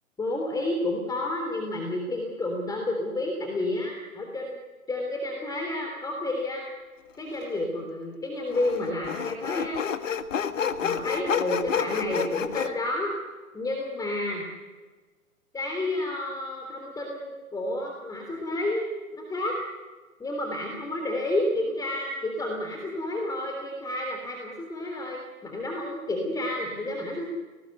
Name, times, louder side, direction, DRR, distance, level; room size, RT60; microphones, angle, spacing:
voice 1, 0.2-4.6 4.9-6.7 7.2-9.8 10.8-13.1 13.5-14.4 15.5-19.5 20.2-27.3, left 1 dB, 10° left, 1 dB, 3.4 m, -30 dB
Sawing, 7.3-7.4 8.5-12.7, left 7 dB, 60° left, 1.8 m, -29 dB
29.5 x 19.5 x 7.9 m, 1.3 s
figure-of-eight pair, 120°, 42 cm